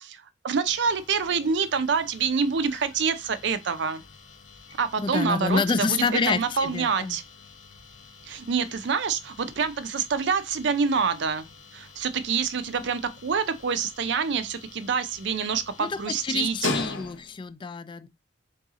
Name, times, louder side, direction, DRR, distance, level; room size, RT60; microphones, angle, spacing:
voice 1, 0.0-4.0 4.8-7.2 8.3-11.5 11.7-16.7, right 6 dB, 65° right, 0.5 m, -26 dB
sound 1, 0.6-17.5, left 3 dB, 85° left, 0.8 m, -41 dB
voice 2, 5.0-7.2 12.8-12.9 15.8-18.1, left 4 dB, 25° left, 0.3 m, -28 dB
3.8 x 2.7 x 3.6 m
head